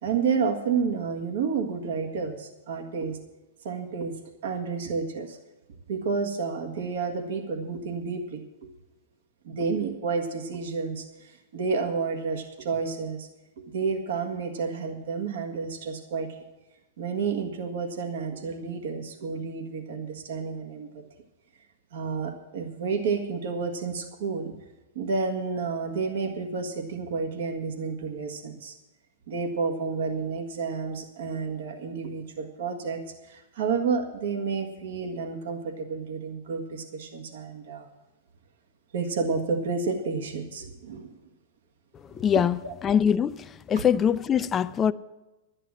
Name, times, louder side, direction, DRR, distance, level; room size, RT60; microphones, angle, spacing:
voice 1, 0.0-3.2 3.6-5.4 5.9-8.7 9.4-13.3 13.6-16.4 17.0-21.0 21.9-24.5 24.9-28.7 29.3-37.9 38.9-41.1 42.3-42.7, right 5 dB, 75° right, 1.7 m, -30 dB
voice 2, 42.2-42.6 42.8-43.4 43.7-44.9, left 8 dB, 25° left, 0.4 m, -22 dB
11.5 x 9.9 x 7.5 m
hypercardioid pair, 130°, 0 cm